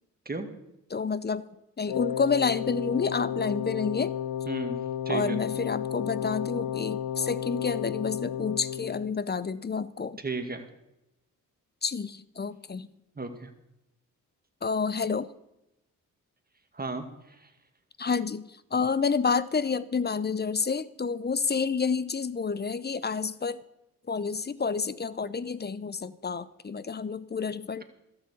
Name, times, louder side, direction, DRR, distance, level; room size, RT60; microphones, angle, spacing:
voice 1, 0.9-1.4 1.8-4.2 5.1-10.2 11.8-12.9 14.6-15.3 18.0-18.5 18.7-23.6 24.1-27.8, left 5 dB, 25° left, 17 dB, 0.7 m, -29 dB
Wind instrument woodwind instrument, 1.9-9.2, left 10 dB, 70° left, 0.6 m, -33 dB
voice 2, 4.5-5.4 10.2-10.7 13.2-13.5 16.7-17.1 17.4-17.5, right 3 dB, 25° right, 5 dB, 2.1 m, -34 dB
13.0 x 7.0 x 8.3 m, 0.89 s
supercardioid pair, 55°, 37 cm